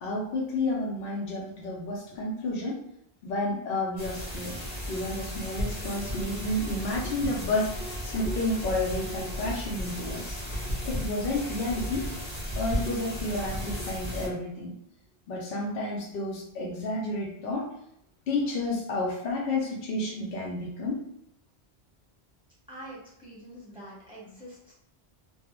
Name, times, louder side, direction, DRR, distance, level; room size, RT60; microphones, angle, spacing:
voice 1, 0.0-2.8 3.2-4.5 4.9-10.4 10.8-12.1 12.6-14.7 15.3-17.7 18.3-21.0, left 2 dB, 70° left, -3 dB, 0.8 m, -31 dB
sound 1, 4.0-14.3, equal, 35° left, 0.8 m, -35 dB
voice 2, 22.7-24.7, right 1 dB, 5° right, -9 dB, 1.0 m, -45 dB
2.2 x 2.0 x 2.9 m, 0.75 s
omnidirectional pair, 1.1 m